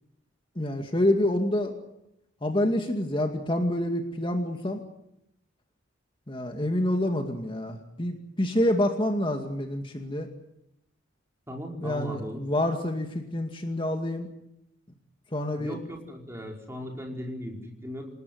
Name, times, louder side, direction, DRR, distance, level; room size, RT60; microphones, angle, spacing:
voice 1, 0.6-1.7 2.4-4.8 6.3-10.3 11.8-14.3 15.3-15.8, left 1 dB, 25° left, 4 dB, 2.2 m, -27 dB
voice 2, 11.5-12.4 15.6-18.1, equal, 15° right, 1 dB, 5.2 m, -37 dB
28.0 x 19.0 x 9.4 m, 0.84 s
head